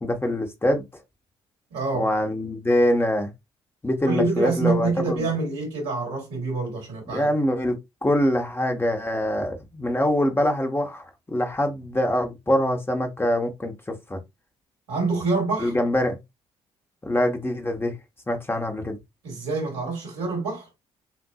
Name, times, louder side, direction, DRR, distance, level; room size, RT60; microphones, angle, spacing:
voice 1, 0.0-0.8 1.9-3.3 3.8-5.3 7.1-11.0 11.3-13.7 14.1-14.2 15.6-16.2 17.0-17.9 18.3-19.0, left 1 dB, 15° left, 1.2 m, -24 dB
voice 2, 1.7-2.1 4.0-7.3 14.9-15.7 19.2-20.7, right 3 dB, 85° right, 2.3 m, -26 dB
5.8 x 2.5 x 2.4 m
hypercardioid pair, 50°, 13 cm